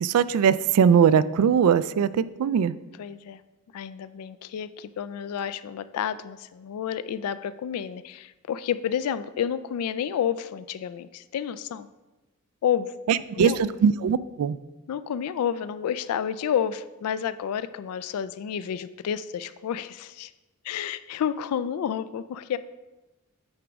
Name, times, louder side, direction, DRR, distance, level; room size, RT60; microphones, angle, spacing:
voice 1, 0.0-2.8 13.1-14.6, right 7 dB, 80° right, 17 dB, 0.3 m, -21 dB
voice 2, 3.0-3.4 3.7-11.9 12.6-13.6 14.9-20.3 20.6-22.6, left 8 dB, 90° left, 15 dB, 0.3 m, -30 dB
8.8 x 3.5 x 5.1 m, 1.1 s
head